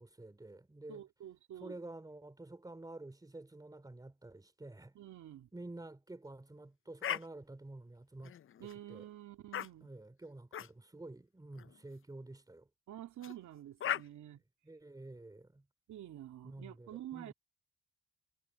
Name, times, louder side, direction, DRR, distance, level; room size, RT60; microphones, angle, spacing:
voice 1, 0.0-1.0 1.6-4.9 5.5-8.4 8.6-9.1 9.8-12.7 14.6-15.6 16.4-17.3, right 2 dB, 10° right, 2.9 m, -50 dB
voice 2, 0.9-1.7 4.9-5.5 8.6-9.9 12.9-14.4 15.9-17.3, right 12 dB, 70° right, 2.7 m, -48 dB
sound 1, 7.0-7.2 8.2-8.7 9.5-9.7 10.5-10.7 11.6-11.8 13.2-13.3 13.8-14.0, left 10 dB, 45° left, 0.6 m, -37 dB
cardioid pair, 90°, 30 cm